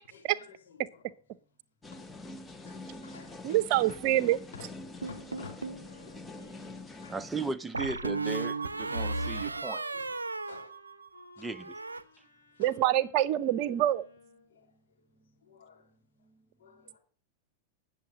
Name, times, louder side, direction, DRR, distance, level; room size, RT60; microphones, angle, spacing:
voice 1, 0.0-1.6 1.9-2.1 2.4-7.5 9.9-10.8 11.3-12.8 13.6-13.8 14.4-16.3 16.6-17.0, left 6 dB, 60° left, 4.9 m, -55 dB
sound 1, 1.8-7.6, left 2 dB, 10° left, 1.1 m, -45 dB
voice 2, 3.4-4.4 12.6-14.0, right 13 dB, 45° right, 0.8 m, -26 dB
sound 2, 5.0-5.9 7.7-11.2 11.5-12.0, right 3 dB, 80° right, 0.6 m, -35 dB
Wind instrument woodwind instrument, 5.8-14.5, left 2 dB, 80° left, 4.5 m, -56 dB
voice 3, 7.1-9.9 11.4-11.7, right 3 dB, 10° right, 0.7 m, -36 dB
10.0 x 7.2 x 7.4 m
figure-of-eight pair, 90°, 0 cm